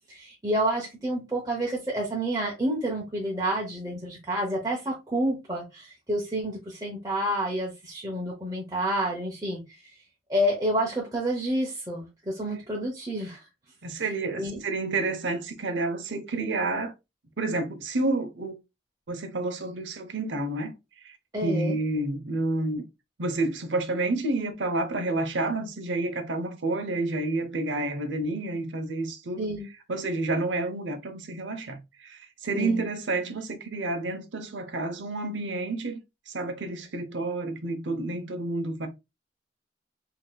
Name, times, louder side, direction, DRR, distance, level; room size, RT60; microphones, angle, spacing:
voice 1, 0.1-9.6 10.3-13.4 14.4-14.6 21.3-21.8 29.4-29.7 32.5-32.8, right 1 dB, 20° right, 0.8 m, -29 dB
voice 2, 13.8-16.9 17.4-18.5 19.1-21.2 21.4-22.8 23.2-29.6 29.9-36.0 36.3-38.9, right 2 dB, 75° right, 0.7 m, -29 dB
3.9 x 2.8 x 2.2 m
head